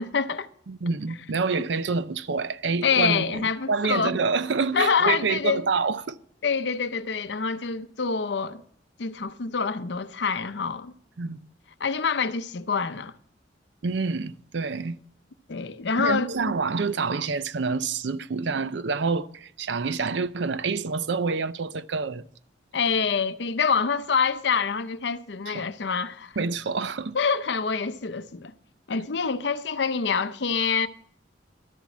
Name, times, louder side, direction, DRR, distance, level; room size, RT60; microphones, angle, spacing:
voice 1, 0.0-0.5 1.6-1.7 2.8-4.2 4.7-5.6 6.4-8.6 9.0-10.9 11.8-13.1 15.5-16.3 22.7-26.3 27.1-28.5 28.9-30.9, left 5 dB, 65° left, 0.6 m, -26 dB
voice 2, 0.7-6.2 11.2-11.4 13.8-15.0 16.0-22.2 25.5-25.7 26.4-27.2, right 4 dB, 70° right, 0.5 m, -27 dB
12.5 x 7.4 x 7.2 m
head